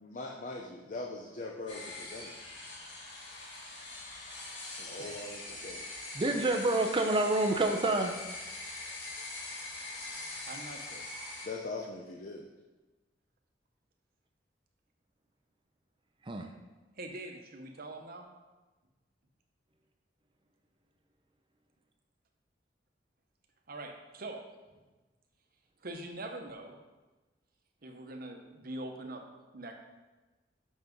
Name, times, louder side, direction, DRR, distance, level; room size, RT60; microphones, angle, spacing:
voice 1, 0.0-2.3 4.8-5.9 6.4-6.5 11.4-12.5, left 2 dB, 45° left, 1 dB, 0.7 m, -41 dB
sound 1, 1.7-11.5, left 2 dB, 80° left, 2.2 m, -43 dB
voice 2, 6.1-8.1 16.3-16.5, right 2 dB, 30° right, 4 dB, 0.6 m, -28 dB
voice 3, 10.4-11.0 17.0-18.3 23.7-24.4 25.8-26.8 27.8-29.2 29.5-29.7, right 2 dB, 55° right, 3 dB, 1.0 m, -43 dB
6.2 x 5.9 x 5.3 m, 1.2 s
head